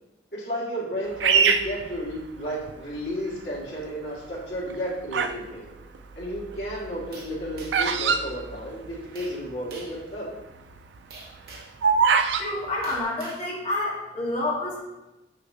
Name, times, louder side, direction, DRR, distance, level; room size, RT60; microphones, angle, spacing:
voice 1, 0.3-5.7 6.2-10.3, equal, 65° left, -6 dB, 2.0 m, -32 dB
Bird vocalization bird call bird song, 1.2-2.7 3.3-3.8 4.5-5.5 5.7-9.2 9.5-9.6 9.8-10.1 10.6-12.5, right 6 dB, 85° right, 0.4 m, -23 dB
sound 1, 7.1-8.0 9.2-9.4 9.7-10.0 11.1-11.8 12.8-13.5, right 3 dB, 55° right, 1.1 m, -45 dB
voice 2, 12.3-14.8, left 2 dB, 35° left, -4 dB, 1.5 m, -28 dB
6.4 x 5.8 x 2.8 m, 1.0 s
head